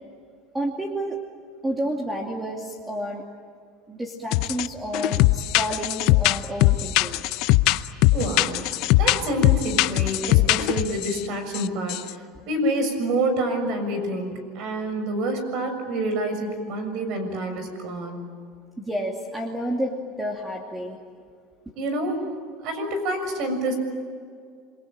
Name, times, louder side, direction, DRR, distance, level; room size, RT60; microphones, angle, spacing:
voice 1, 0.5-1.2 1.6-3.2 3.9-7.2 18.8-21.0, right 1 dB, 10° right, 0 dB, 2.6 m, -30 dB
sound 1, 4.3-4.7 4.9-11.2 11.5-11.6 11.9-12.1, left 18 dB, 60° left, 0.7 m, -20 dB
voice 2, 8.1-8.6 8.9-18.2 21.7-22.2 22.6-23.8, right 1 dB, 55° right, 7 dB, 6.7 m, -27 dB
28.0 x 23.0 x 8.9 m, 2.1 s
supercardioid pair, 140°, 0 cm